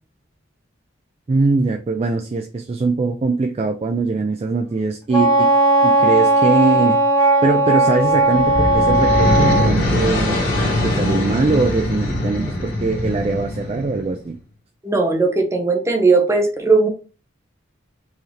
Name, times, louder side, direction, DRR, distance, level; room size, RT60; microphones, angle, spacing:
voice 1, 1.3-5.5 5.8-14.4, right 3 dB, 30° right, 5 dB, 0.3 m, -22 dB
Wind instrument woodwind instrument, 5.1-9.7, right 2 dB, 20° left, 1.1 m, -16 dB
sound 1, 8.1-14.1, left 1 dB, 50° left, 1.7 m, -22 dB
voice 2, 14.8-16.9, right 3 dB, 15° right, 2 dB, 0.9 m, -17 dB
4.7 x 2.8 x 3.2 m, 0.34 s
head